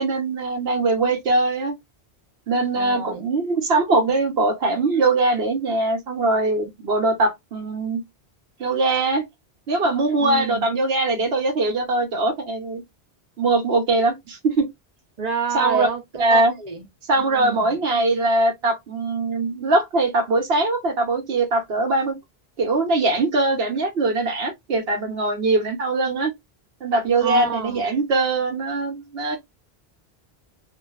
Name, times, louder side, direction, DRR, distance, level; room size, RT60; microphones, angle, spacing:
voice 1, 0.0-1.7 2.5-8.0 8.6-9.3 9.7-12.8 13.4-14.7 15.5-15.9 16.2-16.6 17.1-22.2 22.6-26.3 26.8-29.4, right 2 dB, 75° right, 1.1 m, -21 dB
voice 2, 2.7-3.2 10.2-10.7 15.2-16.9 17.2-17.8 27.2-27.9, right 6 dB, 45° right, 0.7 m, -28 dB
2.7 x 2.4 x 2.3 m
omnidirectional pair, 1.0 m